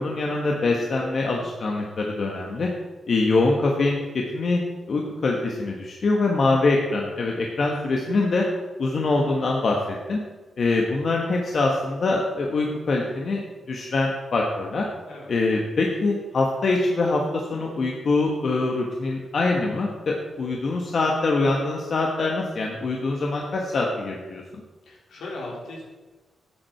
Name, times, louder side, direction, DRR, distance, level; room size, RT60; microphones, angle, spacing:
voice 1, 0.0-2.7 3.1-4.6 4.9-8.4 8.8-10.2 10.6-14.8 15.3-24.6, left 3 dB, 60° left, 0 dB, 1.3 m, -24 dB
voice 2, 20.4-20.8 24.8-25.8, left 2 dB, 85° left, -4 dB, 3.3 m, -38 dB
11.0 x 8.1 x 4.5 m, 1.3 s
cardioid pair, 65°, 0 cm